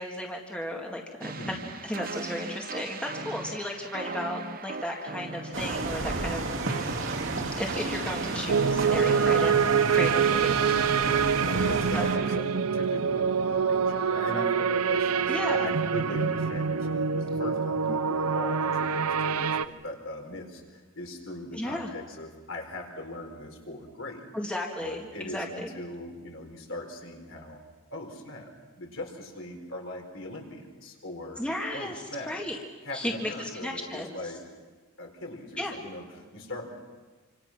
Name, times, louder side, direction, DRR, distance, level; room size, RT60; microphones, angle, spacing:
voice 1, 0.0-1.6 1.9-7.0 7.6-11.2 11.9-12.0 15.3-15.6 21.5-21.9 24.3-25.7 31.4-32.6 32.9-34.2 35.6-35.8, left 1 dB, 5° left, 0 dB, 1.9 m, -34 dB
sound 1, 1.2-12.4, right 4 dB, 40° right, 0.9 m, -38 dB
voice 2, 1.4-1.7 11.4-24.3 24.8-27.6 27.9-28.5 28.8-31.4 31.7-32.4 32.8-34.4 35.0-36.7, left 1 dB, 60° left, 2 dB, 4.6 m, -39 dB
sound 2, 5.5-12.2, right 2 dB, 60° right, 2.6 m, -33 dB
sound 3, 8.5-19.7, right 6 dB, 90° right, 0.7 m, -25 dB
27.5 x 26.0 x 6.0 m, 1.4 s
head